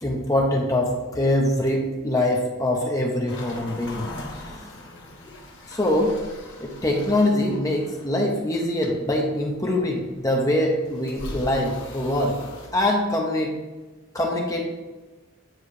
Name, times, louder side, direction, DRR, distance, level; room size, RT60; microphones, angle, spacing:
voice 1, 0.0-4.5 5.7-6.2 6.6-12.4 12.7-13.5 14.1-14.8, left 1 dB, 15° left, -1 dB, 0.9 m, -23 dB
sound 1, 3.3-12.7, left 1 dB, 60° left, 1.3 m, -41 dB
9.5 x 3.2 x 4.9 m, 1.2 s
head